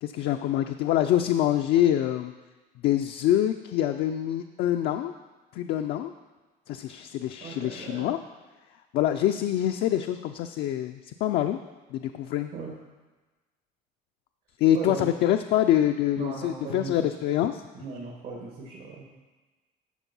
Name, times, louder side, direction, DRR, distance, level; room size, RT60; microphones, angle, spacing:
voice 1, 0.0-2.3 2.8-5.1 5.5-6.1 6.7-8.2 8.9-11.6 11.9-12.5 14.6-17.6, left 12 dB, 80° left, 6 dB, 0.4 m, -25 dB
voice 2, 7.4-8.1 12.5-12.7 14.7-15.1 16.2-17.1 17.7-19.0, right 4 dB, 75° right, -4 dB, 2.0 m, -37 dB
13.0 x 4.5 x 5.5 m, 1.2 s
cardioid pair, 110°, 17 cm